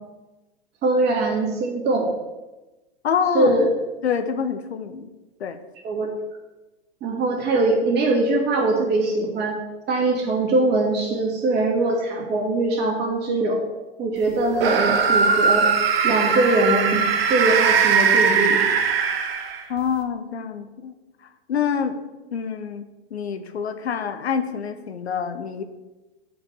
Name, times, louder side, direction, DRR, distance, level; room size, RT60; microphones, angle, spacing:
voice 1, 0.8-2.1 3.3-3.7 5.8-6.1 7.0-9.6 9.9-13.6 14.0-15.7 16.0-18.7, right 2 dB, 30° right, -2 dB, 2.6 m, -22 dB
voice 2, 3.0-3.7 4.0-5.1 5.4-5.6 19.7-21.0 21.5-22.0 22.3-22.8 23.1-25.6, left 7 dB, 85° left, 9 dB, 0.9 m, -26 dB
sound 1, 14.6-19.8, right 5 dB, 65° right, 1.1 m, -20 dB
7.1 x 5.1 x 6.8 m, 1.1 s
hypercardioid pair, 115°, 32 cm